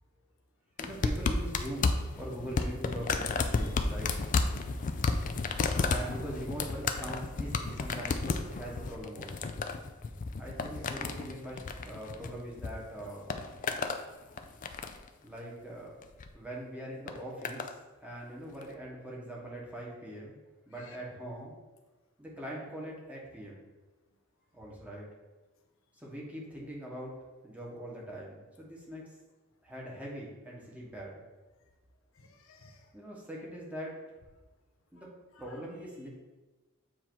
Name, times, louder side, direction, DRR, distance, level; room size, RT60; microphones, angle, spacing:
sound 1, 0.8-12.7 13.0-14.0 14.4-15.1 16.0-16.3 17.1-17.7 18.6-18.7, left 4 dB, 40° left, 0.4 m, -32 dB
voice 1, 0.8-3.3 3.5-4.2 5.9-9.5 10.4-13.3 15.2-15.9 16.3-20.4 20.7-21.5 22.2-23.7 24.5-25.1 26.0-27.1 27.4-29.1 29.6-31.2 32.9-34.1 34.9-35.1 35.4-36.1, right 1 dB, 5° right, -4 dB, 1.2 m, -42 dB
voice 2, 32.1-32.9 33.4-33.5 35.0-35.6, left 3 dB, 80° left, 4 dB, 0.8 m, -57 dB
7.4 x 2.8 x 4.6 m, 1.2 s
head